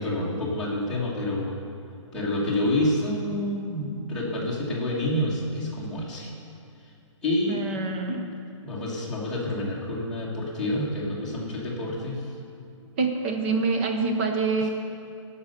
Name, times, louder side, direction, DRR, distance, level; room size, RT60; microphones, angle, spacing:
voice 1, 0.0-1.6 2.1-6.3 7.2-7.6 8.6-12.2, left 1 dB, 5° left, -10 dB, 1.5 m, -28 dB
voice 2, 7.5-8.3 13.0-14.7, right 4 dB, 20° right, 3 dB, 0.7 m, -26 dB
14.5 x 5.6 x 6.6 m, 2.5 s
hypercardioid pair, 175°, 17 cm